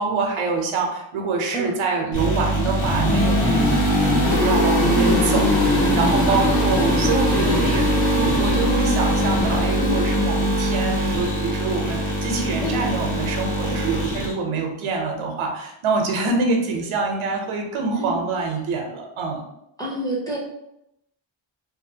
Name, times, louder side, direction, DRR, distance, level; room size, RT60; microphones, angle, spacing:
voice 1, 0.0-7.8 8.1-19.4, right 4 dB, 85° right, 2 dB, 0.7 m, -25 dB
sound 1, 2.1-14.3, equal, 85° left, 1.2 m, -21 dB
voice 2, 6.3-6.6 7.4-7.7 9.8-10.0 12.6-12.8 18.0-18.2 19.8-20.4, equal, 10° left, -4 dB, 0.4 m, -28 dB
2.6 x 2.2 x 2.7 m, 0.82 s
wide cardioid pair, 165°, 47 cm